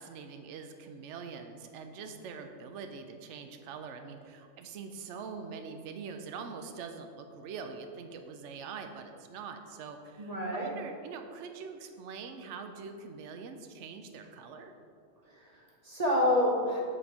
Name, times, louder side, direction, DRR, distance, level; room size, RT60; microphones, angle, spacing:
voice 1, 0.0-14.7, right 5 dB, 75° right, 6 dB, 0.9 m, -44 dB
voice 2, 10.2-10.7 15.3-16.8, left 1 dB, 35° right, -3 dB, 1.1 m, -28 dB
7.6 x 4.1 x 4.7 m, 2.2 s
omnidirectional pair, 1.3 m